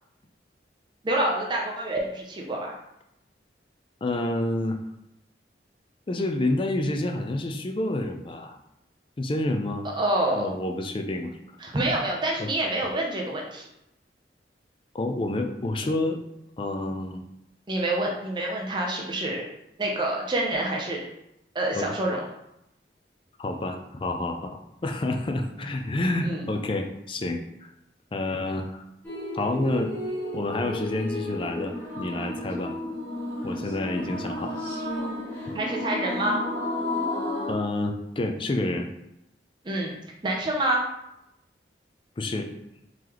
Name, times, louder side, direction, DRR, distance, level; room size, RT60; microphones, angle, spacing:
voice 1, 1.0-2.8 9.8-10.5 11.6-13.6 17.7-19.4 19.8-21.0 21.5-22.3 26.2-26.5 35.5-36.4 39.6-40.0 40.2-40.8, right 1 dB, 25° right, -1 dB, 0.5 m, -27 dB
voice 2, 4.0-4.8 6.1-8.6 9.2-9.9 10.3-11.4 12.4-12.5 14.9-16.2 16.6-17.3 21.7-21.9 23.4-27.7 28.1-28.8 29.3-29.9 30.3-32.7 33.4-34.6 37.5-38.9 42.2-42.5, left 2 dB, 30° left, 5 dB, 0.4 m, -28 dB
sound 1, 29.0-37.5, left 1 dB, 10° left, 1.3 m, -32 dB
3.8 x 3.2 x 2.9 m, 0.83 s
head